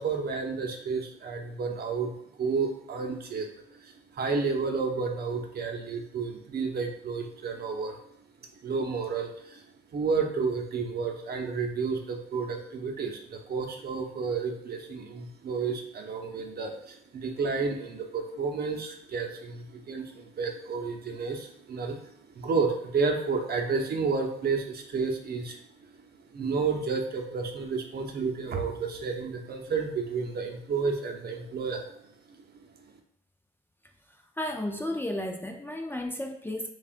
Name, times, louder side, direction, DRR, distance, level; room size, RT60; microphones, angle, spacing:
voice 1, 0.0-8.0 8.6-9.6 9.9-25.6 26.3-32.0, right 4 dB, 50° right, 3 dB, 0.8 m, -31 dB
voice 2, 34.4-36.7, left 1 dB, 10° left, 3 dB, 0.5 m, -33 dB
6.9 x 2.4 x 2.5 m, 0.75 s
cardioid pair, 90°, 20 cm